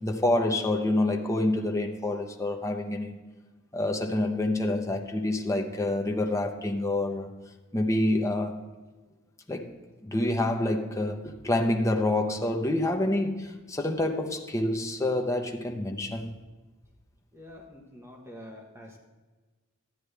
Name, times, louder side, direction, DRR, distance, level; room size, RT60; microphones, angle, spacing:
voice 1, 0.0-3.1 3.7-7.3 7.7-8.6 9.5-9.7 10.0-16.4, left 1 dB, 15° left, 3 dB, 0.8 m, -27 dB
voice 2, 17.3-19.0, left 1 dB, 10° right, 0 dB, 1.1 m, -46 dB
13.0 x 9.4 x 3.4 m, 1.3 s
head